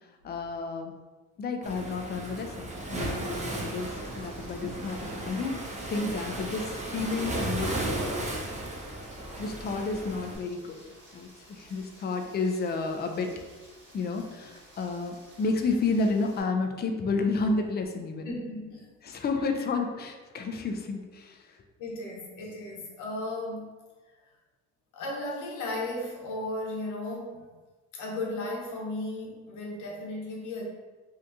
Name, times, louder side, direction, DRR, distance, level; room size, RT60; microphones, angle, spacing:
voice 1, 0.2-1.0 1.4-8.3 8.8-9.0 9.4-10.8 11.1-13.3 13.9-18.3 19.0-21.4, left 3 dB, 35° left, 4 dB, 0.4 m, -31 dB
Waves surf, 1.6-10.4, right 2 dB, 25° right, 0.7 m, -35 dB
Rain, 2.9-16.4, right 1 dB, 40° right, 1.1 m, -54 dB
voice 2, 18.3-18.9 21.8-23.7 24.9-27.4 27.9-30.6, left 2 dB, 80° left, -2 dB, 0.9 m, -35 dB
2.7 x 2.6 x 3.4 m, 1.3 s
cardioid pair, 90°, 30 cm